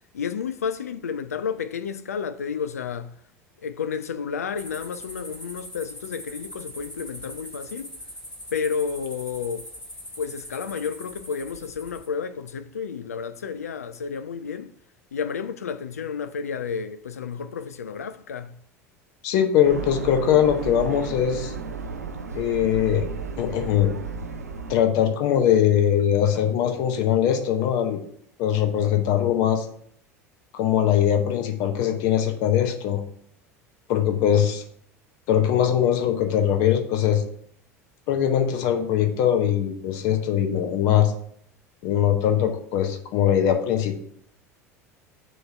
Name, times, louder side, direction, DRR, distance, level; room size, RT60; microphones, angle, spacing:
voice 1, 0.1-3.1 3.6-7.9 8.5-9.7 10.2-14.7 15.1-18.5, left 6 dB, 75° left, 0.4 m, -31 dB
sound 1, 4.6-12.1, equal, 10° left, 1.7 m, -41 dB
voice 2, 19.2-21.5 22.3-23.1 23.4-23.9 24.7-28.0 28.4-29.7 30.5-33.0 33.9-34.6 35.3-37.2 38.1-41.1 41.8-44.0, left 10 dB, 50° left, 0.8 m, -21 dB
sound 2, 19.6-24.7, right 5 dB, 80° right, 0.4 m, -33 dB
6.3 x 3.0 x 5.3 m
figure-of-eight pair, 75°, 8 cm